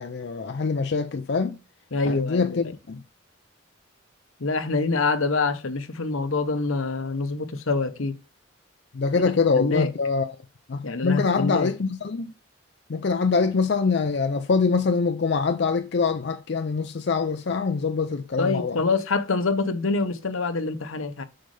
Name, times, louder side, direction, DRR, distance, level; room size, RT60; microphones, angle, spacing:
voice 1, 0.0-1.6 2.0-3.0 8.9-10.3 10.7-12.3 12.9-18.8, left 4 dB, 55° left, 0.4 m, -24 dB
voice 2, 1.9-2.7 4.4-8.1 9.2-9.9 10.8-11.7 18.4-21.2, left 3 dB, 80° left, 0.9 m, -26 dB
7.7 x 5.3 x 3.3 m
head